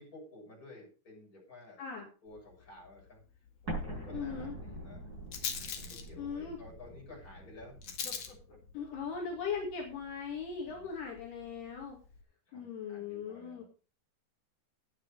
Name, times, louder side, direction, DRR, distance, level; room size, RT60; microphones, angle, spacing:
voice 1, 0.0-3.2 3.6-5.0 5.8-7.8 8.0-8.8 10.6-10.9 12.5-13.6, left 2 dB, 20° left, -2 dB, 7.1 m, -53 dB
Rattle, 2.3-12.2, left 7 dB, 55° left, 2.0 m, -46 dB
Explosion, 3.7-8.4, right 1 dB, 20° right, 6.4 m, -44 dB
voice 2, 4.1-4.6 6.2-6.6 8.7-12.0 12.5-13.6, left 6 dB, 70° left, -1 dB, 4.2 m, -39 dB
12.5 x 9.8 x 4.8 m, 0.35 s
omnidirectional pair, 5.0 m